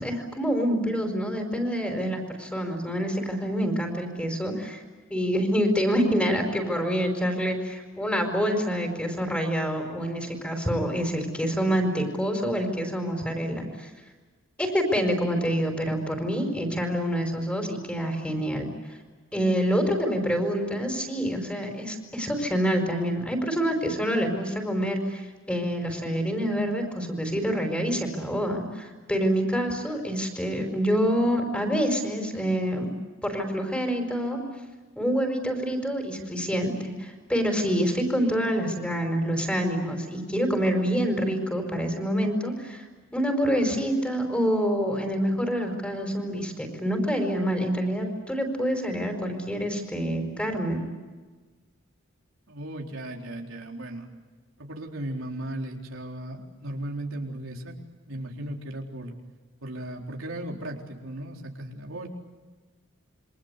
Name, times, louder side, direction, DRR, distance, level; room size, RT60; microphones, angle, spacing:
voice 1, 0.0-4.8 5.1-13.9 14.6-18.7 19.3-32.9 33.2-34.4 35.0-42.9 43.1-50.8, equal, 5° left, 4 dB, 4.8 m, -27 dB
voice 2, 52.5-54.1 54.6-57.8 58.1-59.1 59.6-62.1, right 1 dB, 85° right, 1 dB, 4.2 m, -36 dB
28.0 x 25.0 x 8.3 m, 1.3 s
head